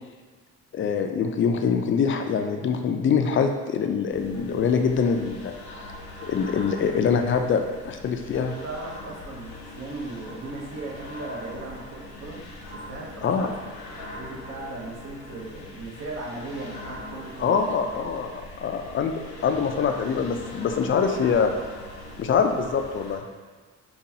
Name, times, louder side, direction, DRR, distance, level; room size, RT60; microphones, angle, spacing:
voice 1, 0.7-5.8 6.2-8.5 13.2-13.5 17.4-21.5 22.2-23.2, left 6 dB, 40° left, 5 dB, 0.4 m, -24 dB
sound 1, 4.1-23.2, left 1 dB, 85° left, 0.9 m, -41 dB
voice 2, 8.3-12.4 12.7-17.6, right 2 dB, 55° right, -3 dB, 1.0 m, -37 dB
5.2 x 2.3 x 2.8 m, 1.5 s
cardioid pair, 90°, 30 cm